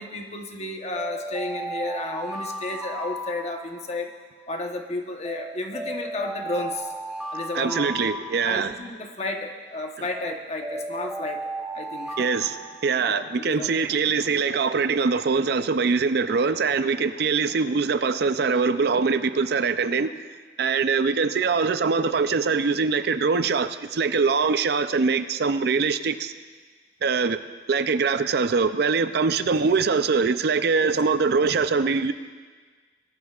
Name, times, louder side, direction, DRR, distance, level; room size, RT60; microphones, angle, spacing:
voice 1, 0.0-4.1 4.5-6.9 7.3-8.0 8.4-12.3 13.0-13.8 30.8-31.0, left 2 dB, 40° left, 3 dB, 1.0 m, -32 dB
sound 1, 0.9-4.1 5.2-9.0 10.1-13.3, right 1 dB, ahead, 2.0 m, -35 dB
voice 2, 7.6-8.7 12.2-12.6 12.8-20.1 20.6-26.3 27.0-27.4 27.7-32.1, right 5 dB, 60° right, 11 dB, 0.5 m, -23 dB
20.0 x 12.0 x 2.4 m, 1.5 s
head